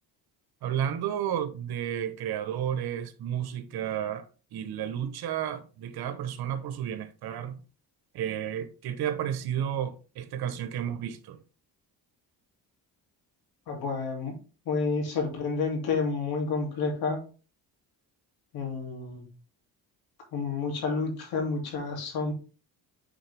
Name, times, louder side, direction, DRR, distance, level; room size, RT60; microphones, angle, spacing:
voice 1, 0.6-4.3 4.5-7.6 8.1-11.4, right 9 dB, 75° right, 1.1 m, -32 dB
voice 2, 13.7-14.3 14.7-17.2 18.5-19.2 20.3-22.3, left 4 dB, 75° left, 2.8 m, -30 dB
8.8 x 4.0 x 3.5 m
cardioid pair, 105°, 38 cm